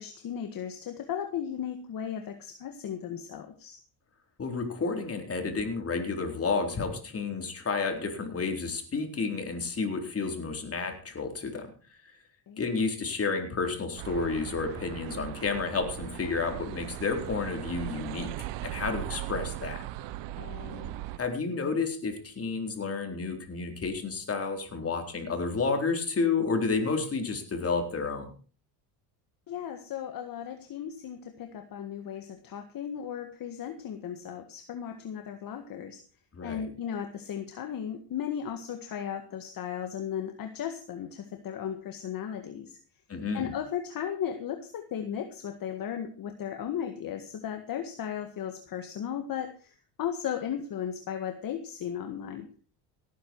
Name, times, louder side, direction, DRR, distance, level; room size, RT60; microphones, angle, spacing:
voice 1, 0.0-3.8 12.5-12.7 20.4-21.0 29.5-36.0 36.4-42.8 43.3-52.5, left 9 dB, 55° left, 7 dB, 1.8 m, -36 dB
voice 2, 4.4-11.7 12.1-12.2 12.6-18.3 18.6-19.8 21.2-28.3 36.3-36.6 43.1-43.5, left 4 dB, 35° left, 4 dB, 4.3 m, -31 dB
sound 1, 14.0-21.2, right 14 dB, 80° right, 1.2 m, -38 dB
18.0 x 10.5 x 4.7 m, 0.39 s
cardioid pair, 100°, 42 cm